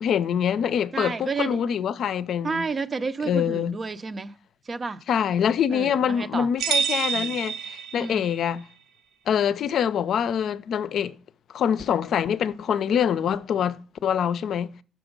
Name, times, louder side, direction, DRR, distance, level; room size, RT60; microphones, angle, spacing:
voice 1, 0.0-2.6 3.2-3.8 5.1-8.6 9.3-11.1 11.5-14.7, left 8 dB, 70° left, 0.5 m, -25 dB
voice 2, 0.9-1.6 2.4-4.3 4.7-5.0 5.7-6.5 7.1-7.3 8.0-8.3, right 4 dB, 35° right, 0.6 m, -30 dB
sound 1, 6.6-8.4, right 7 dB, 85° right, 0.6 m, -27 dB
6.1 x 6.0 x 5.2 m
cardioid pair, 90°, 0 cm